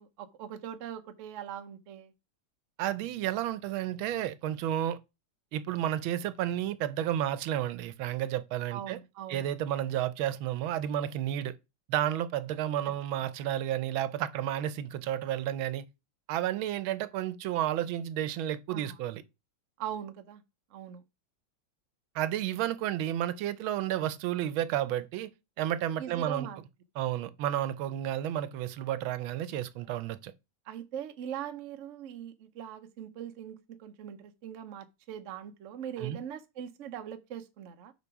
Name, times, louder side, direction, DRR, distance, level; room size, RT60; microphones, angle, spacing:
voice 1, 0.0-2.1 8.7-9.5 18.7-19.0 19.8-20.4 20.7-21.0 26.0-26.6 30.6-37.9, right 9 dB, 55° right, 0.8 m, -41 dB
voice 2, 2.8-5.0 5.5-9.0 9.3-11.5 11.9-15.8 16.3-19.2 22.1-25.3 25.6-26.5 27.0-30.3 36.0-36.2, right 11 dB, 85° right, 1.5 m, -31 dB
6.9 x 5.2 x 4.6 m
omnidirectional pair, 2.2 m